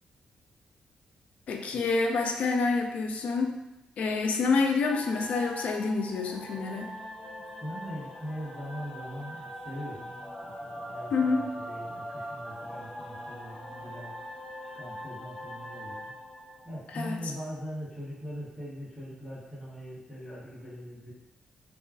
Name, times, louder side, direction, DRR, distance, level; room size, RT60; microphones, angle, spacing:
voice 1, 1.5-3.6 4.0-6.9 11.1-11.4 16.9-17.2, left 4 dB, 65° left, 3 dB, 0.3 m, -27 dB
sound 1, 4.9-17.5, equal, 40° left, 0.7 m, -42 dB
voice 2, 7.3-14.3 14.7-16.1 16.6-21.1, equal, ahead, -10 dB, 1.0 m, -41 dB
2.3 x 2.3 x 3.4 m, 0.95 s
wide cardioid pair, 160°, 2 cm